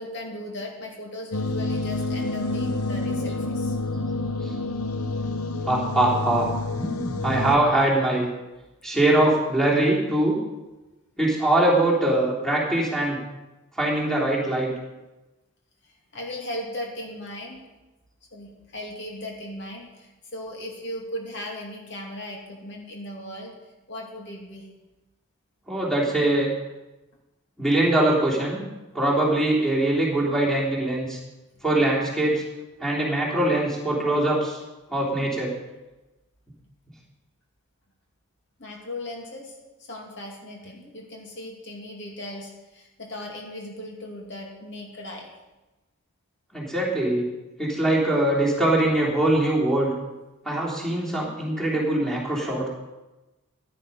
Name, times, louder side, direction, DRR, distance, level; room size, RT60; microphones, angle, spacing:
voice 1, 0.0-3.8 15.8-17.6 18.3-23.5 23.9-24.7 38.6-45.3, left 1 dB, 55° left, -1 dB, 2.5 m, -37 dB
sound 1, 1.3-7.6, left 2 dB, 85° left, 0.8 m, -28 dB
voice 2, 5.7-6.5 6.7-8.3 8.8-10.4 11.2-13.2 13.8-14.7 25.7-26.5 27.6-28.6 28.9-31.2 31.6-32.4 32.8-34.6 34.9-35.5 46.5-47.3 47.6-49.9 50.4-52.7, right 1 dB, ahead, -5 dB, 3.1 m, -22 dB
15.0 x 10.0 x 5.5 m, 1.1 s
head